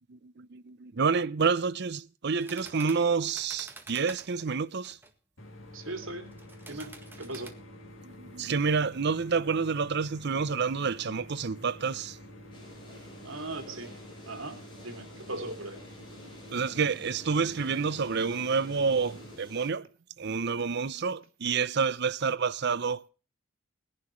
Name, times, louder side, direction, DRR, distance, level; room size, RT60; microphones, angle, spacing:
voice 1, 0.1-5.0 8.0-12.2 16.5-19.9 20.2-23.1, right 5 dB, 55° right, 0.7 m, -29 dB
sound 1, 2.4-5.1 6.3-7.5, right 2 dB, 10° right, 1.8 m, -48 dB
sound 2, 5.4-19.4, left 1 dB, 70° left, 2.6 m, -49 dB
voice 2, 5.7-6.4 6.7-7.6 13.2-14.0 14.3-15.9 20.4-20.5, right 2 dB, 75° right, 2.7 m, -39 dB
sound 3, 12.5-19.7, equal, 25° left, 6.9 m, -51 dB
21.0 x 11.0 x 3.1 m
head